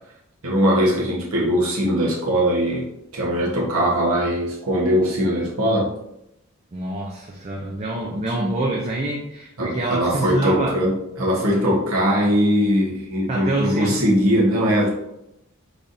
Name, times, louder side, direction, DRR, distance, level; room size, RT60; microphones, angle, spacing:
voice 1, 0.4-2.8 3.1-5.9 8.1-8.5 9.6-15.0, equal, 80° right, -4 dB, 1.1 m, -21 dB
voice 2, 6.7-10.7 13.3-14.0, right 2 dB, 30° right, -1 dB, 0.4 m, -26 dB
3.9 x 3.3 x 2.6 m, 0.83 s
head